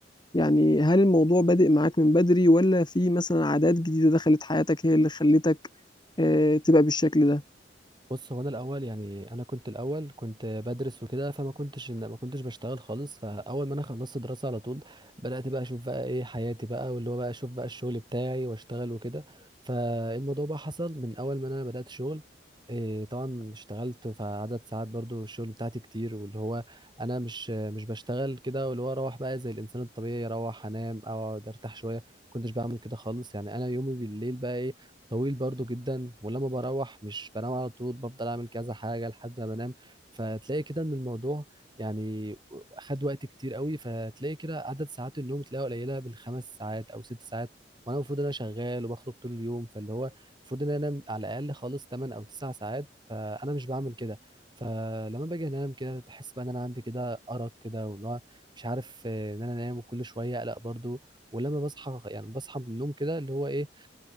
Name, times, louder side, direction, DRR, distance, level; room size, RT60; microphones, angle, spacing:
voice 1, 0.3-5.6 6.2-7.4, left 1 dB, 25° left, 1.3 m, -21 dB
voice 2, 8.1-22.2 22.7-32.0 32.3-34.7 35.1-41.4 41.8-47.5 47.9-50.1 50.5-54.2 54.6-58.2 58.6-61.0 61.3-63.9, right 1 dB, 25° right, 3.0 m, -34 dB
head